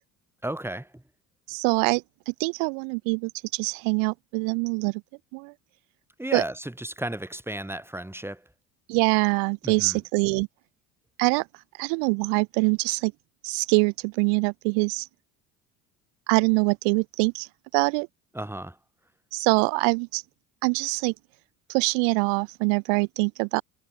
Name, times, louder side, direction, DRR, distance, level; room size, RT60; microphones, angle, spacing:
voice 1, 0.4-1.0 6.2-8.5 9.6-10.0 18.3-18.8, right 1 dB, 5° right, 6.6 m, -34 dB
voice 2, 1.5-5.0 5.3-5.5 6.3-6.4 8.9-10.5 11.2-11.4 11.8-13.1 13.4-15.1 16.3-17.5 17.7-18.1 19.3-20.2 20.6-21.1 21.7-23.6, right 40 dB or more, 70° right, 1.8 m, -24 dB
hypercardioid pair, 70°, 43 cm